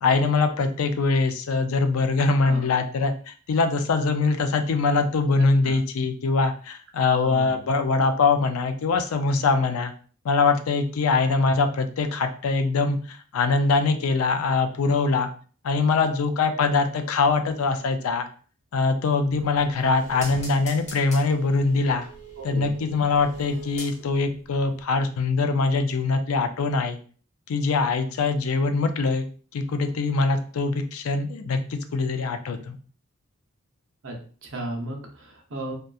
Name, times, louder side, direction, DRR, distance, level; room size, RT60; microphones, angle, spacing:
voice 1, 0.0-9.9 10.2-15.3 15.6-18.3 18.7-22.0 22.4-27.0 27.5-29.3 29.5-32.8, left 4 dB, 80° left, 8 dB, 0.4 m, -23 dB
voice 2, 5.4-5.8 7.1-7.6 22.4-22.8 34.0-35.7, right 1 dB, 60° right, 1 dB, 0.7 m, -35 dB
sound 1, 19.2-24.4 24.7-24.8, equal, 30° left, 0.9 m, -42 dB
2.7 x 2.2 x 2.3 m, 0.41 s
head